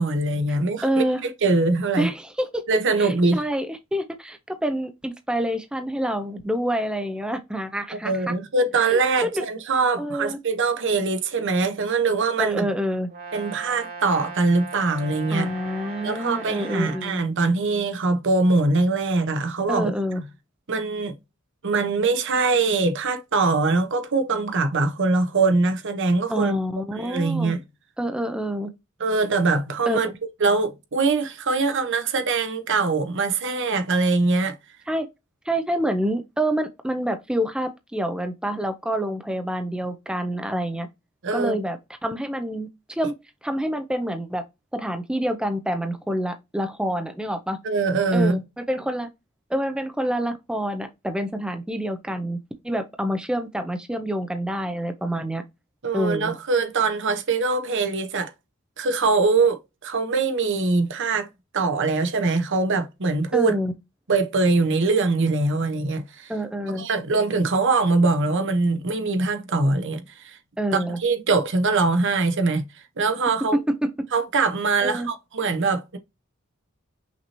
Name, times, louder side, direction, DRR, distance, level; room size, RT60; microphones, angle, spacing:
voice 1, 0.0-2.1 2.7-3.4 8.0-12.7 13.3-15.5 16.0-19.9 20.7-21.1 21.6-26.5 27.0-27.6 29.0-30.1 30.4-34.6 41.2-41.5 47.6-48.4 55.8-58.3 58.8-61.3 61.5-63.6 64.1-66.3 66.7-70.4 70.7-72.6 73.0-73.6 74.1-76.0, right 3 dB, 60° right, 0.8 m, -22 dB
voice 2, 0.8-1.2 2.0-2.6 3.0-8.3 8.9-9.4 10.0-10.4 12.4-13.1 15.3-17.2 19.7-20.2 26.3-27.5 28.0-28.7 29.9-30.0 34.9-35.1 35.5-40.9 41.3-43.1 43.4-44.4 44.7-47.6 48.1-49.1 49.5-52.4 52.6-55.4 55.9-56.3 63.3-63.7 66.3-66.8 70.6-71.0 73.5-73.9 74.8-75.1, equal, 5° right, 0.4 m, -27 dB
Brass instrument, 13.1-17.1, right 4 dB, 45° right, 1.4 m, -38 dB
5.9 x 2.8 x 2.8 m
head